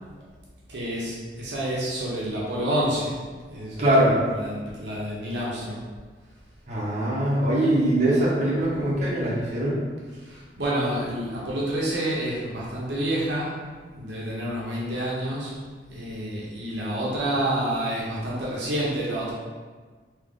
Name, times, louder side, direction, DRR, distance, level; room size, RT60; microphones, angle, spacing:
voice 1, 0.7-3.1 3.5-5.8 10.2-13.7 13.9-15.6 15.9-19.3, right 1 dB, 70° right, -6 dB, 0.9 m, -29 dB
voice 2, 3.8-4.2 6.7-9.8, right 1 dB, 40° right, -8 dB, 1.0 m, -22 dB
3.5 x 3.0 x 3.7 m, 1.4 s
head